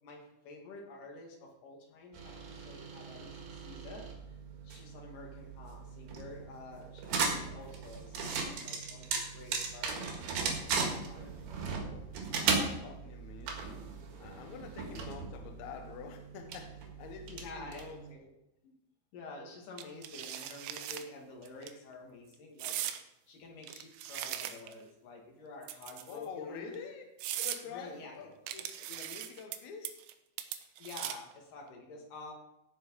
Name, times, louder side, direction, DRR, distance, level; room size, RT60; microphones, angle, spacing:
voice 1, 0.0-4.4 4.6-11.5 14.8-15.0 17.3-18.3 18.6-18.7 19.1-22.9 23.3-26.7 27.7-28.3 30.8-32.3, left 3 dB, 55° left, 0 dB, 3.3 m, -49 dB
sound 1, 2.1-18.1, right 5 dB, 65° right, 3.3 m, -37 dB
voice 2, 11.6-13.8 14.2-18.0 26.1-27.0 27.3-30.0, left 6 dB, 80° left, 4 dB, 1.6 m, -47 dB
sound 2, 19.8-21.0 21.5-21.7 22.6-23.0 23.6-24.8 25.6-26.2 26.7-26.8 27.2-27.6 28.5-29.6 29.8-30.1 30.4-31.3, right 12 dB, 80° right, 3.1 m, -39 dB
17.0 x 6.3 x 4.8 m, 0.89 s
omnidirectional pair, 5.4 m